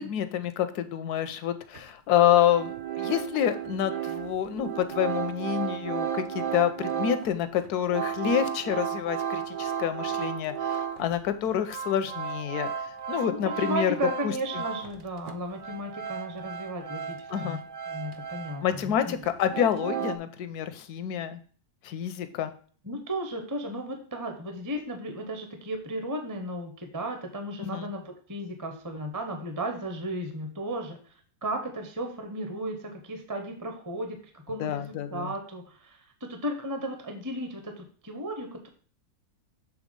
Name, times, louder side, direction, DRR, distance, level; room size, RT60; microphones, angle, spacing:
voice 1, 0.0-12.7 13.1-14.0 14.2-14.3 17.3-17.6 18.6-21.4 21.8-22.5 27.6-27.9 34.6-35.3, left 10 dB, 85° left, 11 dB, 1.2 m, -28 dB
sound 1, 1.7-1.8 2.2-11.1 11.5-15.0 15.3-18.9 19.2-20.2, right 8 dB, 65° right, 0.5 m, -34 dB
voice 2, 13.3-17.6 17.9-19.2 22.8-31.0 31.4-38.7, right 1 dB, 15° right, 4 dB, 0.7 m, -35 dB
7.3 x 3.6 x 5.1 m, 0.43 s
omnidirectional pair, 1.6 m